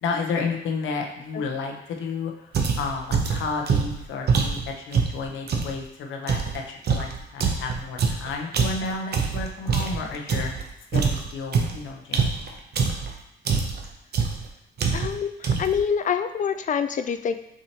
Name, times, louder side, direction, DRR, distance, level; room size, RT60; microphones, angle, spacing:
voice 1, 0.0-2.5 2.8-10.5 10.9-12.6, left 4 dB, 80° left, 2 dB, 0.8 m, -32 dB
sound 1, 2.5-5.8 6.3-10.6 10.9-13.1 13.5-13.9 14.1-14.5 14.8-15.2 15.4-15.8, right 5 dB, 55° right, 0.7 m, -24 dB
voice 2, 14.9-15.3 15.6-17.3, left 7 dB, 40° left, 10 dB, 0.4 m, -25 dB
6.2 x 2.9 x 2.9 m, 0.89 s
cardioid pair, 90°, 20 cm